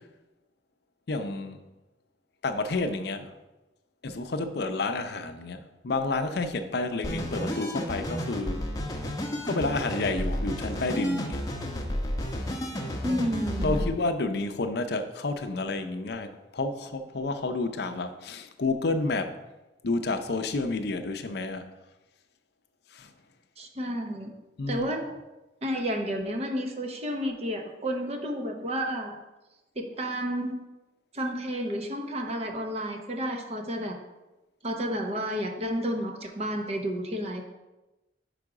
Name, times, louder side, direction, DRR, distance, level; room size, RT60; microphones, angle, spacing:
voice 1, 1.1-1.6 2.4-3.3 4.0-8.6 9.4-11.4 13.6-19.3 19.8-21.7 22.9-23.1 24.6-24.9, left 3 dB, 60° left, 8 dB, 0.6 m, -30 dB
sound 1, 7.0-13.9, equal, 20° left, 0.8 m, -31 dB
voice 2, 13.0-13.9 23.6-24.3 24.7-25.2 25.6-29.2 29.8-30.6 31.1-34.0 34.6-37.4, equal, 35° right, 4 dB, 0.7 m, -31 dB
5.4 x 5.0 x 4.8 m, 1.1 s
head